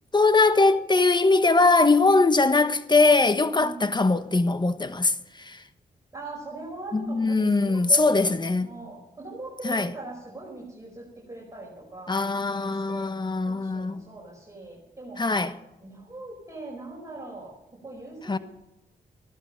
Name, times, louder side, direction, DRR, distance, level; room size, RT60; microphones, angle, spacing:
voice 1, 0.1-5.6 6.9-8.7 9.6-9.9 12.1-14.0 15.2-15.6 18.3-18.4, left 3 dB, 25° left, 1.2 m, -21 dB
voice 2, 3.5-3.9 6.1-8.1 8.6-13.1 13.4-15.3 15.8-17.5 17.8-18.4, right 2 dB, 20° right, 4.9 m, -41 dB
15.0 x 12.0 x 6.4 m
cardioid pair, 60°, 17 cm